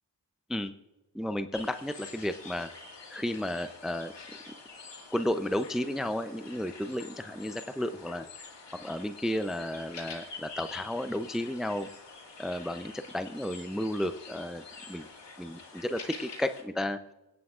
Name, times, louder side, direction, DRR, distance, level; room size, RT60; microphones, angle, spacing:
voice 1, 1.1-2.7 3.1-4.6 5.1-8.3 8.7-11.9 12.4-15.1 15.4-17.0, left 1 dB, ahead, 9 dB, 0.6 m, -33 dB
sound 1, 1.5-16.6, left 4 dB, 75° left, 2.0 m, -47 dB
25.5 x 9.5 x 2.5 m, 1.0 s
cardioid pair, 55°, 44 cm